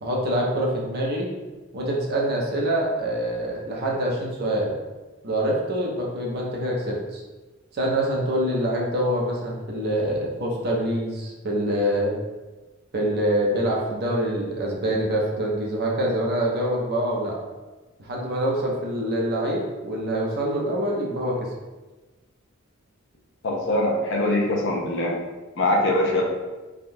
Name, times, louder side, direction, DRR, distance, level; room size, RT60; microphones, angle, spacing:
voice 1, 0.0-1.3 1.7-4.7 5.2-7.2 7.7-12.2 12.9-17.4 18.0-21.5, right 1 dB, 50° right, -2 dB, 0.6 m, -25 dB
voice 2, 23.4-25.2 25.6-26.2, left 1 dB, 60° left, -1 dB, 0.6 m, -22 dB
3.4 x 2.3 x 2.6 m, 1.2 s
head